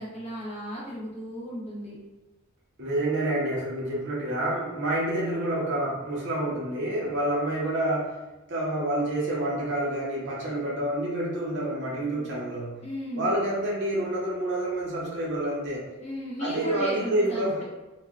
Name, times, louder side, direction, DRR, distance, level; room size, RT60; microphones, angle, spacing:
voice 1, 0.0-1.9 12.8-13.3 16.0-17.6, equal, 30° left, -7 dB, 0.8 m, -35 dB
voice 2, 2.8-8.1 8.5-12.8 13.1-15.9 16.4-17.6, right 1 dB, 50° right, -5 dB, 0.7 m, -28 dB
3.2 x 2.1 x 2.3 m, 1.1 s
head